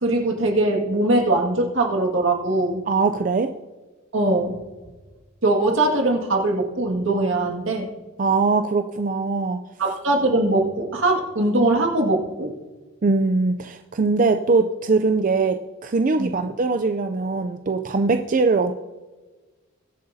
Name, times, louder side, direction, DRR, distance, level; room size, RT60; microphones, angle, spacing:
voice 1, 0.0-2.8 4.1-4.6 5.4-7.9 9.8-12.5 16.2-16.3, right 2 dB, 75° right, 1 dB, 2.0 m, -21 dB
voice 2, 2.9-3.5 8.2-9.6 13.0-18.7, right 3 dB, 40° right, 7 dB, 0.4 m, -21 dB
21.5 x 7.8 x 2.7 m, 1.3 s
head